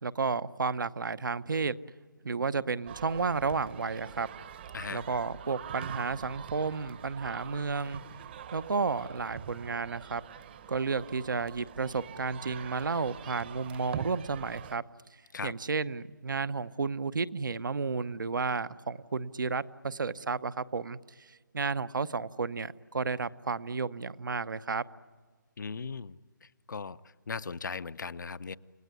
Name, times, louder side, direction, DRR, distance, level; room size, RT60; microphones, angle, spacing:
voice 1, 0.0-1.8 2.2-4.3 4.9-8.0 8.5-10.2 10.7-14.8 15.4-24.8, right 4 dB, 70° right, 13 dB, 1.0 m, -32 dB
sound 1, 2.9-14.8, right 9 dB, 30° right, 0.9 m, -44 dB
voice 2, 4.7-5.0 15.3-15.5 25.6-27.0 27.3-28.6, left 5 dB, 65° left, 14 dB, 0.8 m, -38 dB
29.5 x 18.0 x 9.6 m, 1.5 s
figure-of-eight pair, 160°, 11 cm